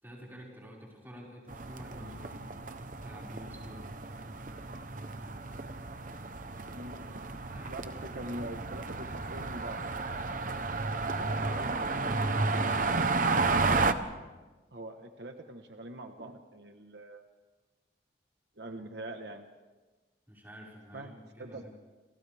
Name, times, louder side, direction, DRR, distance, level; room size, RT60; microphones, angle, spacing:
voice 1, 0.0-2.6 3.0-3.9 7.5-7.9 11.0-13.3 20.3-21.7, equal, 10° right, -4 dB, 5.5 m, -48 dB
sound 1, 1.5-13.9, right 3 dB, 45° right, 1.0 m, -32 dB
voice 2, 6.7-7.2 7.7-9.8 14.7-17.2 18.6-19.4 20.9-21.1 21.4-21.7, right 1 dB, 70° right, 5 dB, 1.3 m, -43 dB
29.5 x 27.5 x 3.5 m, 1.2 s
head